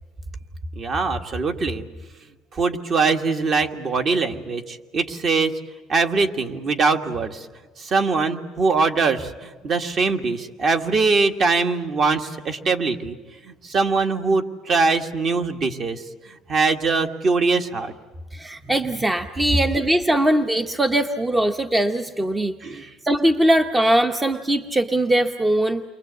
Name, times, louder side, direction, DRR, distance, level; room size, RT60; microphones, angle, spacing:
voice 1, 0.7-1.9 2.5-5.5 5.9-7.5 7.8-13.2 13.4-17.9 22.6-22.9, right 4 dB, 40° right, 6 dB, 1.8 m, -22 dB
voice 2, 18.3-22.5 23.0-25.8, right 1 dB, 10° right, 7 dB, 0.9 m, -21 dB
29.5 x 23.5 x 8.2 m, 1.3 s
cardioid pair, 145°, 0 cm